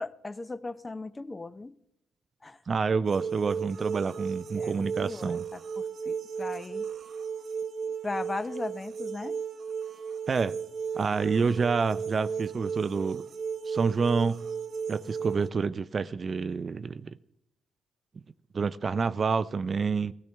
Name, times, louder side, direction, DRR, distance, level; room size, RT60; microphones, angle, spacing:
voice 1, 0.0-1.8 2.4-2.6 4.6-6.8 7.8-9.4, left 3 dB, 20° left, 0.7 m, -38 dB
voice 2, 2.7-5.4 10.3-10.5 10.9-13.2 13.7-14.4 14.9-17.2 18.5-20.1, right 5 dB, 40° right, 0.4 m, -28 dB
sound 1, 3.0-15.5, right 6 dB, 60° right, 0.9 m, -35 dB
16.0 x 15.5 x 3.4 m
cardioid pair, 90°, 0 cm